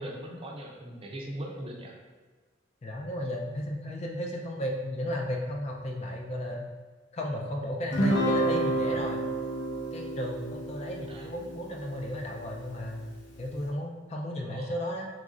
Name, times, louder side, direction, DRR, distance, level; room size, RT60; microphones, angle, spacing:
voice 1, 0.0-2.0 11.1-11.3 14.5-14.8, right 1 dB, 30° right, 0 dB, 0.5 m, -40 dB
voice 2, 2.8-6.6 7.1-9.2 9.9-13.1 13.4-15.1, left 1 dB, 35° left, 0 dB, 0.3 m, -34 dB
Guitar, 7.9-12.5, right 1 dB, 70° left, 0.7 m, -30 dB
3.0 x 2.5 x 3.7 m, 1.4 s
head